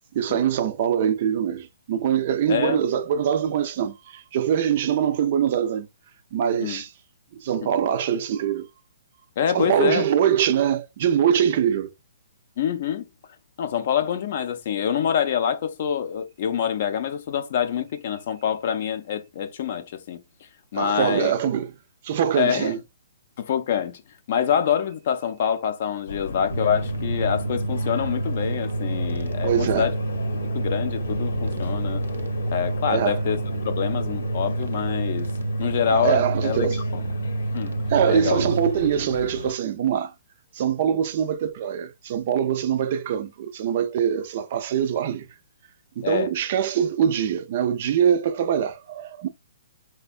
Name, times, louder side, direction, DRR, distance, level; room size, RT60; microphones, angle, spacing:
voice 1, 0.1-5.9 6.3-6.9 7.4-8.7 9.5-11.9 20.7-21.7 22.0-22.8 29.4-29.9 32.9-33.2 35.9-36.8 37.9-40.1 40.5-45.3 46.0-49.3, right 9 dB, 40° right, 0.4 m, -23 dB
voice 2, 2.5-2.8 6.6-6.8 9.4-10.0 12.6-13.1 13.6-20.2 20.7-21.3 22.3-22.7 23.4-24.0 24.3-29.9 30.5-32.0 32.5-35.3 35.6-37.0 37.5-37.7 38.0-38.5 46.0-46.3, left 8 dB, 45° left, 0.5 m, -26 dB
sound 1, 26.1-39.5, left 3 dB, 80° left, 0.8 m, -34 dB
sound 2, 26.5-38.7, right 2 dB, 90° right, 0.7 m, -28 dB
4.3 x 2.2 x 2.4 m
hypercardioid pair, 165°, 0 cm